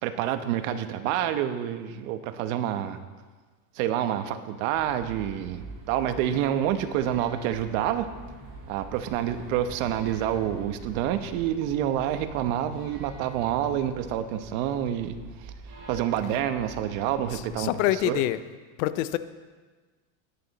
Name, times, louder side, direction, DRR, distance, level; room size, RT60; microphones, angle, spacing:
voice 1, 0.0-3.0 3.8-8.1 8.7-15.2 15.4-15.5 15.9-18.2, right 11 dB, 75° right, 9 dB, 1.2 m, -28 dB
sound 1, 4.7-17.5, right 3 dB, 50° right, 4.5 m, -44 dB
voice 2, 17.6-18.4 18.8-19.2, left 14 dB, 75° left, 13 dB, 0.8 m, -25 dB
17.0 x 11.5 x 4.2 m, 1.4 s
cardioid pair, 155°, 41 cm